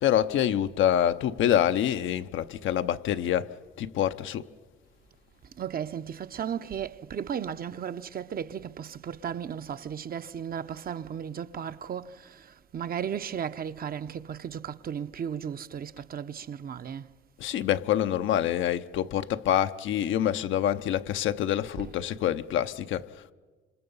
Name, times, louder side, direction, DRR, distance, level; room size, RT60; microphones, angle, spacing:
voice 1, 0.0-4.5 17.4-23.3, left 11 dB, 80° left, 0.8 m, -26 dB
voice 2, 5.6-17.1 21.8-21.9, right 8 dB, 50° right, 0.7 m, -35 dB
27.5 x 26.0 x 5.5 m
cardioid pair, 90°, 20 cm